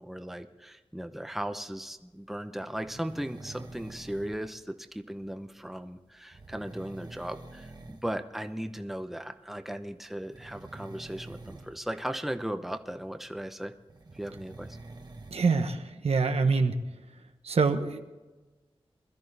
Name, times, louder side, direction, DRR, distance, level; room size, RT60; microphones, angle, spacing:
voice 1, 0.0-13.7 14.1-14.8, right 1 dB, ahead, 8 dB, 0.8 m, -37 dB
sound 1, 2.8-4.4 6.3-8.1 8.4-8.7 10.1-11.8 13.9-15.4, right 2 dB, 45° right, 1.3 m, -47 dB
voice 2, 15.3-16.8 17.4-18.0, right 4 dB, 85° right, 7 dB, 1.1 m, -25 dB
21.5 x 13.0 x 3.4 m, 1.2 s
wide cardioid pair, 110°, 10 cm